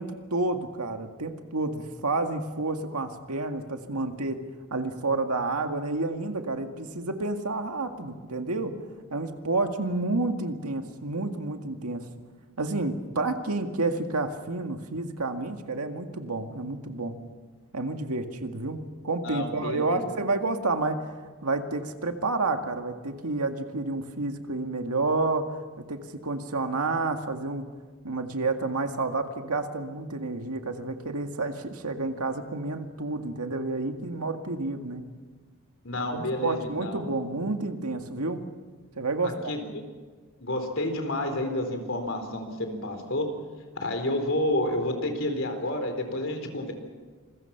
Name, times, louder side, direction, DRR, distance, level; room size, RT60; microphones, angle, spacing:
voice 1, 0.0-4.4 4.7-8.7 9.1-12.1 12.6-17.1 17.7-21.1 21.4-25.5 25.8-27.7 28.0-35.0 36.0-38.4 39.0-39.5, right 3 dB, 90° right, 5 dB, 2.0 m, -30 dB
voice 2, 19.2-20.2 35.8-37.0 39.2-39.8 40.4-43.3 43.8-46.7, left 1 dB, 60° left, 5 dB, 4.1 m, -30 dB
27.5 x 22.0 x 5.9 m, 1.4 s
head